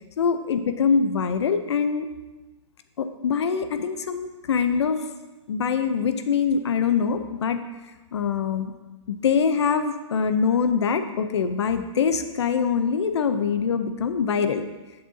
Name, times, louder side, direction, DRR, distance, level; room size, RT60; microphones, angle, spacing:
voice 1, 0.2-2.1 3.0-5.0 5.5-7.6 8.1-8.7 9.2-14.6, left 6 dB, 60° left, 9 dB, 0.7 m, -23 dB
11.0 x 7.7 x 2.8 m, 1.1 s
hypercardioid pair, 175°, 16 cm